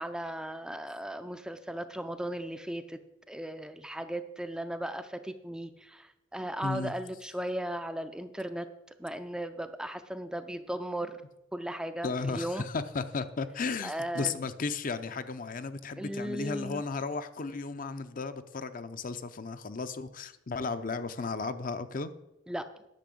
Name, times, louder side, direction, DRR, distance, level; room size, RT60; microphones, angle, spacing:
voice 1, 0.0-3.0 3.3-8.7 9.0-11.2 11.5-12.6 13.8-14.4 16.0-16.8 22.5-22.7, right 1 dB, 5° right, 9 dB, 0.4 m, -36 dB
voice 2, 6.6-6.9 12.0-22.1, left 4 dB, 45° left, 11 dB, 0.6 m, -34 dB
10.5 x 5.9 x 7.7 m, 0.91 s
head